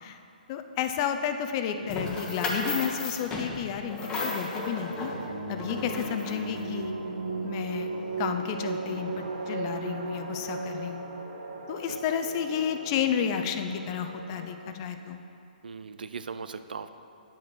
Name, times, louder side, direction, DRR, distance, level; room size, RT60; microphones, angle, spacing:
voice 1, 0.5-5.1 5.5-6.9 7.4-7.9 8.2-11.0 11.7-15.2, left 8 dB, 30° left, 7 dB, 0.6 m, -31 dB
voice 2, 1.8-2.3 11.9-12.0 15.6-16.9, right 5 dB, 80° right, 11 dB, 0.5 m, -40 dB
sound 1, 1.9-6.6, left 2 dB, 15° left, 1.1 m, -34 dB
sound 2, 4.9-14.8, right 3 dB, 60° right, 1.4 m, -36 dB
10.0 x 7.6 x 4.5 m, 2.6 s
hypercardioid pair, 150°, 5 cm